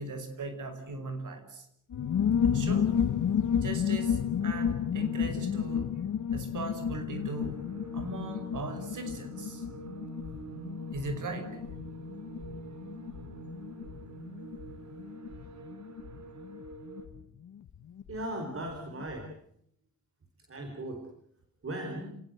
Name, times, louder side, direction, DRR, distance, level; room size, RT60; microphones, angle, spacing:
voice 1, 0.0-1.7 2.4-2.9 3.6-6.0 6.3-7.7 7.9-9.6 10.9-11.6, right 2 dB, 80° right, 8 dB, 5.5 m, -38 dB
sound 1, 1.9-18.2 18.5-18.6 18.8-19.2, left 8 dB, 80° left, 1.3 m, -32 dB
sound 2, 7.1-17.1, right 2 dB, 60° right, 3.9 m, -46 dB
voice 2, 18.1-19.3 20.4-21.1 21.6-22.1, right 1 dB, 45° right, 4 dB, 4.8 m, -37 dB
29.0 x 19.0 x 7.9 m, 0.71 s
wide cardioid pair, 120°, 30 cm